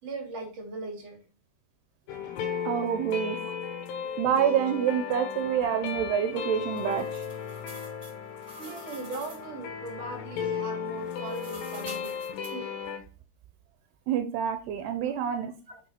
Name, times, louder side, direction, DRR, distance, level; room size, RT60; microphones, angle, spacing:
voice 1, 0.0-1.2 3.4-3.5 5.9-6.0 6.9-7.0 8.6-12.2 12.5-12.7 14.8-15.0 15.7-15.8, right 3 dB, 40° right, 2 dB, 3.5 m, -39 dB
sound 1, 2.1-13.0, left 7 dB, 85° left, 3.3 m, -35 dB
voice 2, 2.7-3.4 4.2-7.2 14.1-15.5, right 9 dB, 85° right, 7 dB, 2.8 m, -27 dB
sound 2, 6.2-9.5 10.8-12.5, equal, 15° right, 3.1 m, -48 dB
6.8 x 5.4 x 5.8 m, 0.36 s
omnidirectional pair, 4.8 m